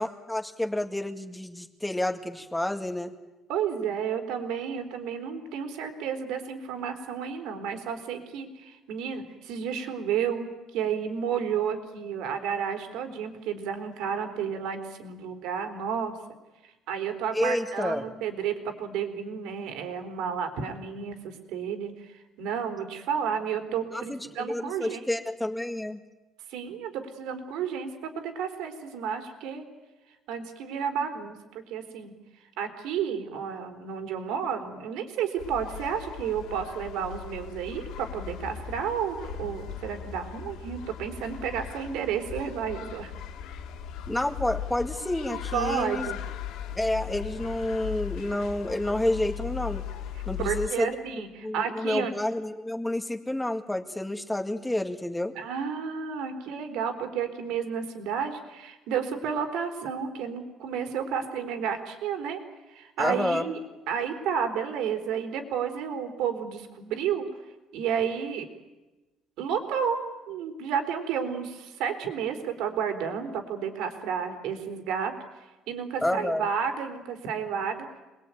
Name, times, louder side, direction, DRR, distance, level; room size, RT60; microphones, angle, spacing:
voice 1, 0.0-3.1 17.3-18.0 23.9-26.0 44.1-46.1 46.8-49.8 50.3-55.4 63.0-63.4 76.0-76.5, left 1 dB, 5° left, 5 dB, 2.0 m, -29 dB
voice 2, 3.5-16.1 16.9-25.0 26.5-29.6 30.3-32.1 32.6-43.1 45.5-46.2 50.4-52.1 55.3-62.4 62.7-63.6 63.9-67.3 67.7-68.5 69.4-70.0 70.3-77.9, right 7 dB, 85° right, 6 dB, 4.2 m, -31 dB
sound 1, 35.4-50.7, left 9 dB, 80° left, 2.5 m, -38 dB
27.0 x 21.5 x 9.3 m, 1.1 s
cardioid pair, 140°, 0 cm